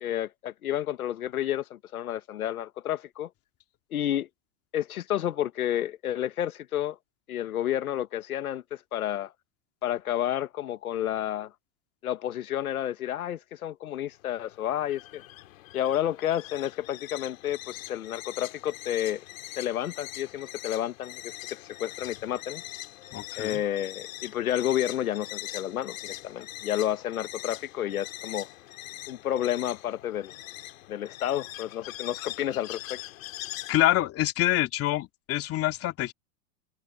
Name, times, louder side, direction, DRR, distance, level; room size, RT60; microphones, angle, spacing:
voice 1, 0.0-3.3 3.9-4.3 4.7-7.0 7.3-9.3 9.8-11.5 12.0-15.2 15.7-19.2 19.6-22.6 23.4-28.5 29.1-30.3 30.9-33.0, left 11 dB, 90° left, 1.5 m, -30 dB
sound 1, 14.1-33.8, left 16 dB, 70° left, 2.4 m, -42 dB
voice 2, 23.1-23.6 33.7-36.1, left 14 dB, 35° left, 2.9 m, -26 dB
hypercardioid pair, 125°, 42 cm